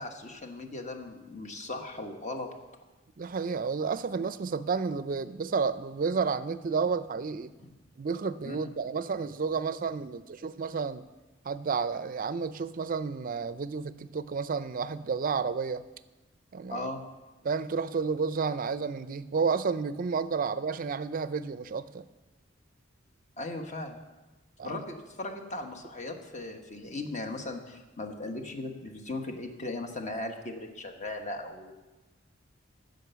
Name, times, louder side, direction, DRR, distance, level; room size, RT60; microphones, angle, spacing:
voice 1, 0.0-2.5 8.4-8.7 16.7-17.0 23.4-24.0 24.6-31.7, left 2 dB, 40° left, 4 dB, 1.2 m, -38 dB
voice 2, 3.2-7.5 8.0-11.0 11.4-15.8 16.5-16.9 17.4-22.1 24.6-24.8, right 5 dB, 45° right, 14 dB, 0.5 m, -31 dB
15.0 x 5.2 x 6.9 m, 1.1 s
head